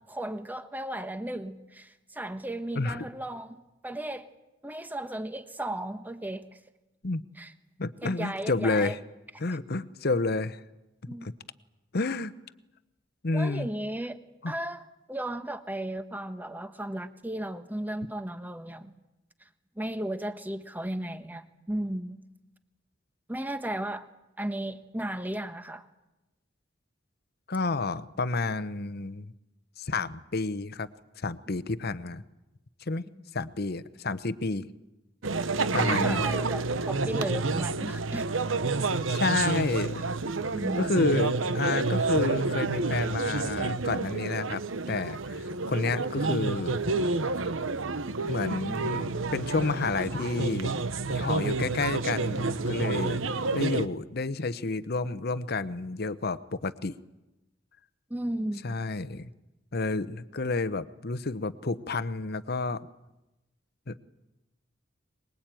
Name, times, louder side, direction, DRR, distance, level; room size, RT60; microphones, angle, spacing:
voice 1, 0.0-4.3 4.6-6.6 7.4-7.5 8.0-8.9 9.5-9.6 11.1-11.3 13.3-14.2 14.5-18.9 19.8-22.2 23.3-24.1 24.4-25.9 35.7-38.3 40.5-41.0 58.1-58.7, right 1 dB, 10° right, 10 dB, 1.3 m, -35 dB
voice 2, 2.8-3.1 7.0-7.2 7.8-9.0 9.4-10.6 11.2-11.3 11.9-12.3 13.2-13.7 14.4-14.5 27.5-29.3 29.8-30.9 31.2-32.2 32.9-33.0 33.3-34.7 35.7-36.4 39.1-40.0 40.8-44.6 44.9-46.8 48.2-50.7 51.1-53.2 53.5-56.9 58.6-59.3 59.7-62.9 63.9-64.0, left 3 dB, 55° left, 14 dB, 0.9 m, -30 dB
sound 1, 35.2-53.9, right 3 dB, 90° right, 1.0 m, -29 dB
23.5 x 21.0 x 9.1 m, 0.97 s
head